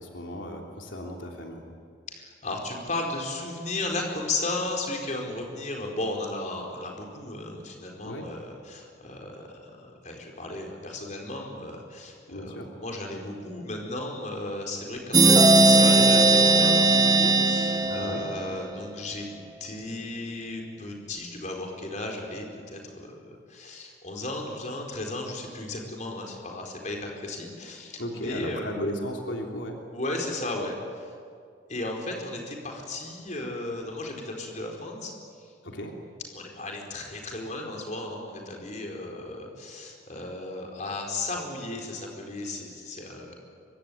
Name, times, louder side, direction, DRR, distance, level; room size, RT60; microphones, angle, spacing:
voice 1, 0.0-1.6 8.0-8.2 12.3-12.7 17.9-18.2 28.0-29.8 35.6-36.0, left 1 dB, 85° left, 1 dB, 3.3 m, -35 dB
voice 2, 2.1-19.2 19.6-28.8 29.9-31.1 31.7-35.1 35.4-35.5 36.3-43.4, left 2 dB, 40° left, 1 dB, 4.6 m, -35 dB
sound 1, 15.1-18.7, right 3 dB, 25° right, 1.4 m, -18 dB
24.5 x 24.0 x 9.4 m, 2.2 s
head